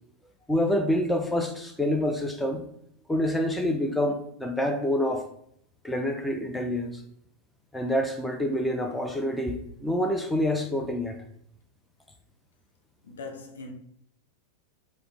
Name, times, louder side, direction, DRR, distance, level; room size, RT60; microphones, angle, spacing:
voice 1, 0.5-2.6 3.1-5.3 5.8-7.0 7.7-11.2, left 1 dB, 5° left, 0.4 m, -27 dB
voice 2, 13.0-13.7, left 3 dB, 65° left, 0.7 m, -40 dB
4.9 x 2.1 x 2.8 m
figure-of-eight pair, 90°, 0 cm